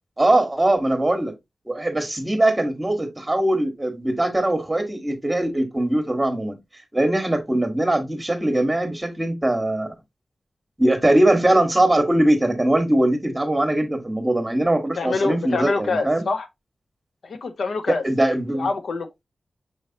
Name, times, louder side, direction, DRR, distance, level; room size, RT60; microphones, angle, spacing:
voice 1, 0.2-1.3 1.7-6.6 6.9-9.9 10.8-16.2 17.9-18.7, right 1 dB, 20° right, 1.4 m, -21 dB
voice 2, 15.0-16.5 17.2-18.0 18.5-19.1, left 3 dB, 85° left, 0.6 m, -25 dB
6.0 x 3.2 x 2.8 m
wide cardioid pair, 85°, 0 cm